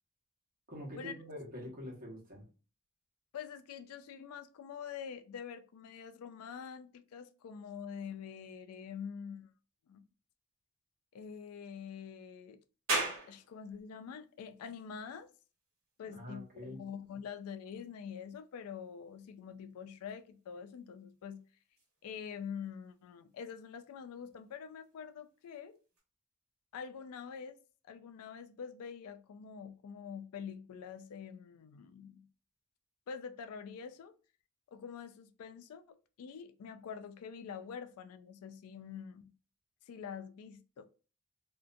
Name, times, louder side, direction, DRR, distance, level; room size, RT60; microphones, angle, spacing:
voice 1, 0.7-2.5 16.0-16.8, equal, 40° right, 1.0 m, -45 dB
voice 2, 3.3-9.5 9.9-10.0 11.1-12.6 13.3-15.3 16.0-21.4 22.0-25.8 26.7-27.6 27.8-32.3 33.1-34.1 34.7-39.2 39.9-40.8, left 7 dB, 80° left, 0.3 m, -46 dB
sound 1, 12.9-26.0, right 2 dB, 65° right, 1.1 m, -45 dB
2.5 x 2.1 x 2.4 m
head